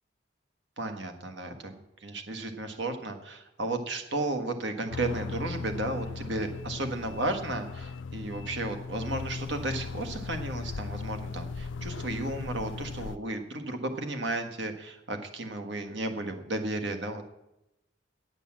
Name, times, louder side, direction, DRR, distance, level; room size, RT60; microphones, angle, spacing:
voice 1, 0.8-1.7 2.0-17.2, right 2 dB, 65° right, 6 dB, 1.6 m, -34 dB
sound 1, 4.9-13.2, left 4 dB, 75° left, 0.5 m, -38 dB
11.0 x 8.2 x 7.4 m, 0.89 s
head